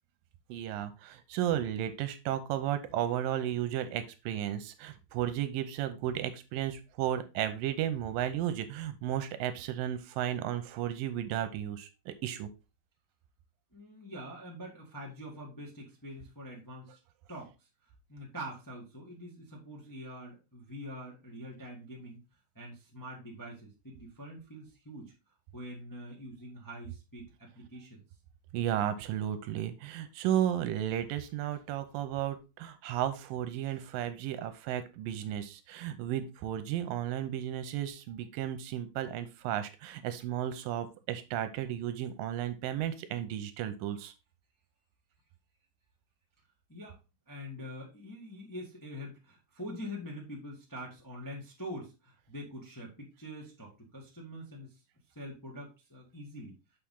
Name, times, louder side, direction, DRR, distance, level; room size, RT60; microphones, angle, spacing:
voice 1, 0.5-12.5 28.5-44.1, right 11 dB, 85° right, 10 dB, 2.5 m, -34 dB
voice 2, 13.7-17.0 17.3-17.5 18.1-22.2 22.5-25.1 25.5-28.0 46.7-47.0 47.3-54.7 55.1-56.6, equal, 10° left, -2 dB, 1.0 m, -44 dB
6.7 x 5.9 x 3.7 m, 0.27 s
omnidirectional pair, 3.9 m